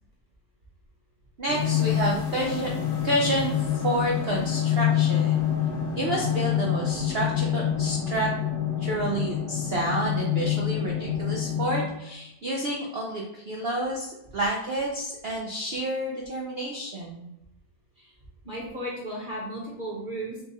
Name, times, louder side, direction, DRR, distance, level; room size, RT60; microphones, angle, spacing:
voice 1, 1.4-2.7 3.0-3.5 3.8-5.5 6.0-8.3 8.8-17.3, right 1 dB, 75° right, -2 dB, 0.5 m, -29 dB
sound 1, 1.5-11.9, left 10 dB, 70° left, 1.4 m, -27 dB
voice 2, 18.4-20.4, right 1 dB, 35° right, -5 dB, 1.0 m, -35 dB
4.3 x 2.4 x 4.0 m, 0.88 s
omnidirectional pair, 1.8 m